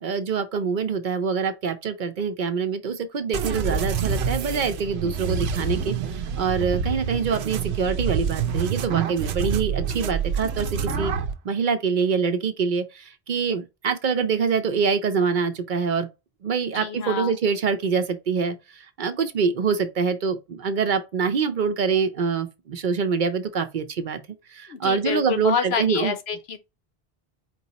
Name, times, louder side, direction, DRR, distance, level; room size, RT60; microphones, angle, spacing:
voice 1, 0.0-11.1 11.4-16.1 16.4-24.2 24.5-26.2, right 5 dB, 55° right, 0.7 m, -25 dB
sound 1, 3.3-11.3, right 6 dB, 85° right, 0.9 m, -27 dB
voice 2, 16.7-17.3 24.7-26.6, left 7 dB, 85° left, 1.0 m, -27 dB
4.6 x 2.9 x 4.0 m
omnidirectional pair, 1.0 m